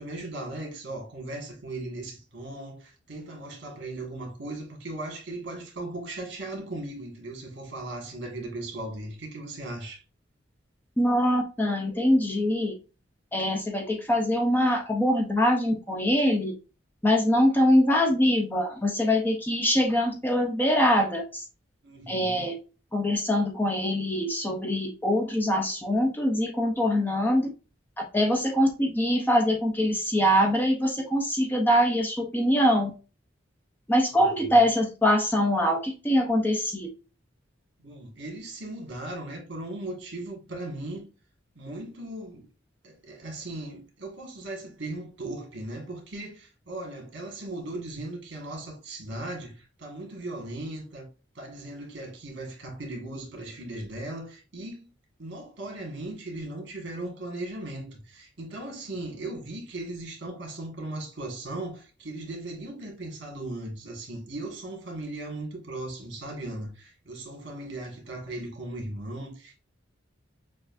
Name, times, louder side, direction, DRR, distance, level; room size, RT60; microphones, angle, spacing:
voice 1, 0.0-10.0 21.8-22.5 34.1-34.6 37.8-41.1 41.5-42.5 42.8-51.1 51.3-54.9 55.2-69.5, right 2 dB, 60° right, 1.5 m, -38 dB
voice 2, 11.0-12.7 13.3-16.5 17.0-21.4 22.1-22.5 22.9-27.5 28.0-32.9 33.9-36.9, equal, 10° left, 0.5 m, -23 dB
6.3 x 2.5 x 2.5 m
head